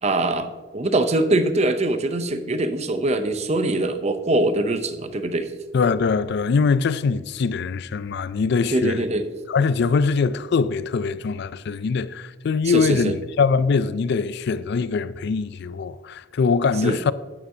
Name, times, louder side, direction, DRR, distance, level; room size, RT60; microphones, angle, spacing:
voice 1, 0.0-5.5 8.7-9.3 12.7-13.1 16.8-17.0, right 2 dB, 35° right, 0.6 m, -23 dB
voice 2, 5.7-9.0 9.5-17.1, left 5 dB, 55° left, 0.3 m, -22 dB
13.0 x 9.2 x 2.8 m
head